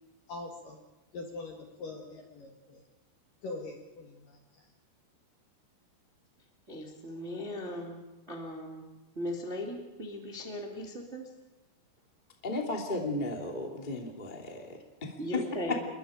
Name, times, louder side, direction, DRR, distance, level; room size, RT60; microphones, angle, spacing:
voice 1, 0.3-0.8 1.1-2.8 3.4-4.6, left 2 dB, 55° left, 1 dB, 2.6 m, -43 dB
voice 2, 6.7-8.9 9.1-11.3 15.2-15.8, left 1 dB, 25° right, 0 dB, 1.6 m, -38 dB
voice 3, 12.4-15.4 15.7-15.8, left 2 dB, 20° left, 1 dB, 1.3 m, -34 dB
28.5 x 22.5 x 5.1 m, 1.1 s
omnidirectional pair, 5.9 m